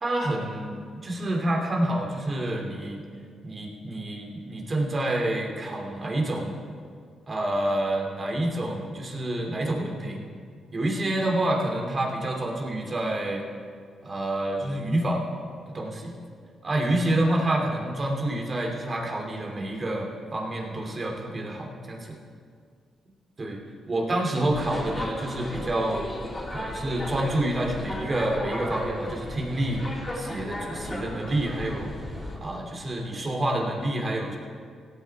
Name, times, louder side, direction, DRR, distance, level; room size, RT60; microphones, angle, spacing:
voice 1, 0.0-3.0 3.4-6.6 7.3-10.2 10.7-13.4 14.0-15.2 15.7-16.1 16.6-22.1 23.4-23.6 23.9-26.1 26.5-31.9 32.4-34.4, right 1 dB, 35° right, 0 dB, 2.7 m, -28 dB
sound 1, 24.5-32.4, left 1 dB, 25° left, 3.4 m, -35 dB
17.5 x 8.4 x 4.6 m, 2.1 s
supercardioid pair, 65°, 0 cm